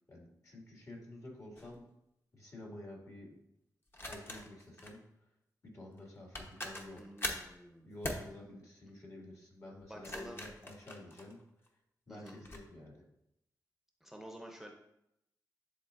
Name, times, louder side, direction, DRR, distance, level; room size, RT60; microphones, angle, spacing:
voice 1, 0.1-1.8 2.3-3.4 4.1-5.0 5.6-7.0 7.5-11.4 12.1-13.0, left 1 dB, 50° left, -2 dB, 2.2 m, -50 dB
sound 1, 1.6-1.8 3.9-5.0 6.0-6.1 6.3-7.5 8.0-8.3 9.8-11.7 12.3-12.6, left 1 dB, 35° left, 1.0 m, -42 dB
voice 2, 7.0-8.0 9.9-10.4 12.1-12.4 14.0-14.7, equal, 5° right, 1 dB, 0.7 m, -50 dB
10.0 x 3.7 x 2.6 m, 0.81 s
cardioid pair, 75°, 7 cm